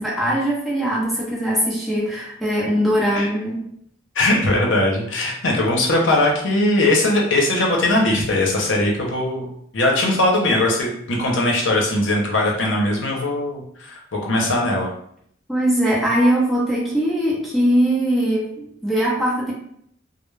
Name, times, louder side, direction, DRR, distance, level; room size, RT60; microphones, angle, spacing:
voice 1, 0.0-3.6 15.5-19.5, equal, ahead, -6 dB, 0.8 m, -21 dB
voice 2, 4.1-14.9, left 1 dB, 80° left, -1 dB, 0.7 m, -20 dB
2.2 x 2.0 x 3.2 m, 0.67 s
head